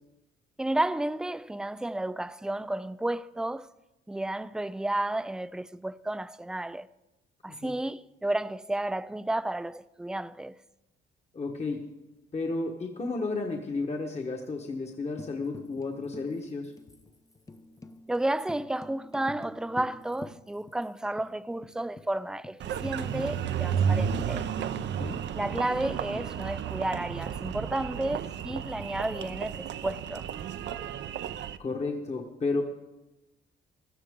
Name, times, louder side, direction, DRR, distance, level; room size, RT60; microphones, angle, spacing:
voice 1, 0.6-3.7 4.1-6.9 7.4-10.6 18.1-24.5 25.3-30.3, right 1 dB, 5° right, 0.3 m, -32 dB
voice 2, 11.3-11.8 12.3-16.7 24.7-25.2 31.6-32.6, left 3 dB, 35° left, 1.3 m, -32 dB
Tambourine, 15.2-20.9 21.2-21.3 21.6-22.1 22.4-22.5 22.8-27.0 28.5-29.5, left 2 dB, 15° left, 0.8 m, -47 dB
Engine, 22.6-31.6, right 8 dB, 65° right, 0.7 m, -32 dB
16.5 x 13.0 x 3.7 m
cardioid pair, 90°, 20 cm